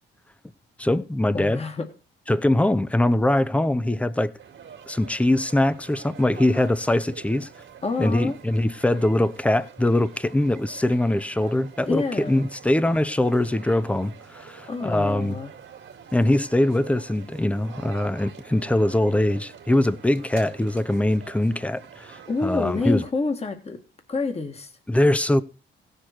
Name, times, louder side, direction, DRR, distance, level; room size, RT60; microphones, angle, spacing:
voice 1, 0.8-1.6 2.3-4.3 4.9-7.5 8.0-15.4 16.1-23.0 24.9-25.4, left 1 dB, 5° left, 0.7 m, -22 dB
voice 2, 1.3-1.9 7.8-8.4 11.9-12.5 14.7-15.5 22.3-23.8 24.1-24.7, left 3 dB, 30° left, 2.0 m, -28 dB
sound 1, 4.4-23.1, right 8 dB, 70° right, 2.0 m, -46 dB
16.5 x 6.7 x 4.5 m
cardioid pair, 90°, 20 cm